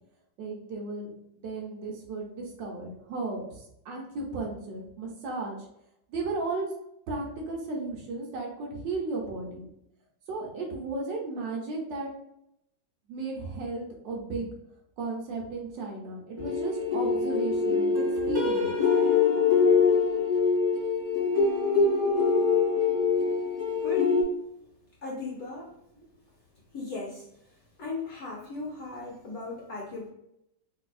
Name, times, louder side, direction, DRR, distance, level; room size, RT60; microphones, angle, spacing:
voice 1, 0.4-1.1 1.4-5.6 6.1-6.7 7.1-9.6 10.3-12.1 13.1-14.5 15.0-18.7 26.0-26.1, right 3 dB, 70° right, 0 dB, 1.3 m, -35 dB
sound 1, 16.4-24.2, left 5 dB, 20° right, 0.6 m, -24 dB
voice 2, 23.8-24.1 25.0-25.7 26.7-27.3 27.8-30.1, left 3 dB, 60° left, -3 dB, 1.0 m, -36 dB
3.6 x 2.6 x 2.4 m, 0.79 s
omnidirectional pair, 2.2 m